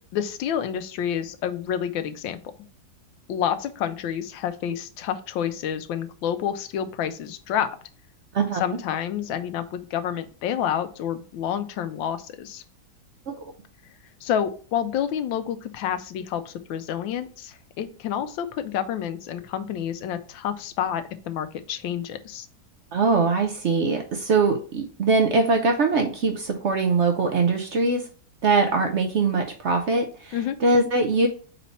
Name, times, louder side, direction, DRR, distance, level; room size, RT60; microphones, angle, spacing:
voice 1, 0.1-2.4 3.3-7.7 8.6-12.6 14.2-22.5 30.3-30.6, left 9 dB, 90° left, 10 dB, 1.4 m, -29 dB
voice 2, 22.9-28.1 28.4-31.3, right 3 dB, 75° right, 5 dB, 0.6 m, -22 dB
4.2 x 4.1 x 5.5 m, 0.41 s
omnidirectional pair, 2.0 m